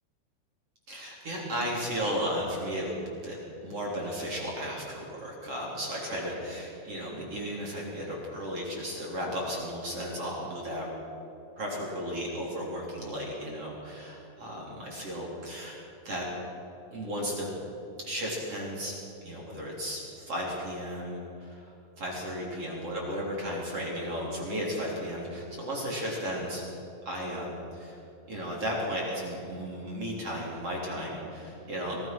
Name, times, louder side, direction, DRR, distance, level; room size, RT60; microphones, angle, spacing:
voice 1, 0.9-3.4 3.6-10.9 11.6-15.8 16.0-16.3 16.9-17.5 18.0-19.0 19.2-26.7 27.1-28.0 28.3-32.0, equal, 35° right, -3 dB, 4.0 m, -34 dB
25.5 x 18.0 x 6.1 m, 2.9 s
omnidirectional pair, 5.5 m